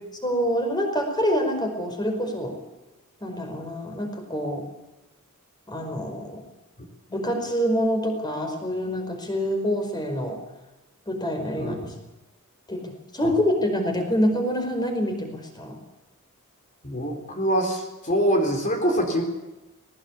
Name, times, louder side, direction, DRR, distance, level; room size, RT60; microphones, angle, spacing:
voice 1, 0.2-2.5 3.2-4.6 5.7-6.4 7.1-10.4 11.1-11.9 12.7-15.8, equal, 20° left, 4 dB, 5.0 m, -26 dB
voice 2, 11.6-11.9 13.2-13.3 16.8-19.2, equal, 35° left, 3 dB, 3.9 m, -24 dB
20.5 x 19.0 x 8.4 m, 1.0 s
head